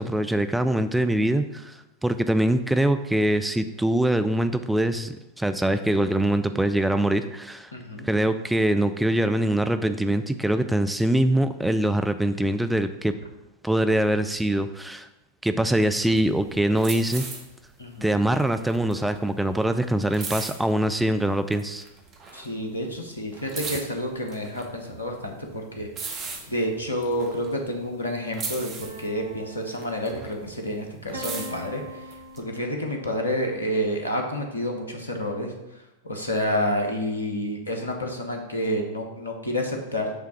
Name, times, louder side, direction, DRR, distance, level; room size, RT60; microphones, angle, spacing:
voice 1, 0.0-7.7 8.0-13.1 13.6-15.1 15.4-17.2 18.0-21.8, right 1 dB, 5° right, 9 dB, 0.3 m, -23 dB
voice 2, 7.7-8.1 17.8-18.1 22.3-31.8 32.4-35.5 36.0-40.1, equal, 80° left, 3 dB, 1.1 m, -29 dB
sound 1, 15.9-21.1 21.5-22.8 23.1-28.0 28.3-30.6 30.9-32.4, right 4 dB, 30° right, 1.1 m, -38 dB
sound 2, 28.8-30.5 31.1-33.1, equal, 70° right, 1.0 m, -41 dB
7.5 x 3.5 x 5.8 m, 0.96 s
figure-of-eight pair, 90°, 0 cm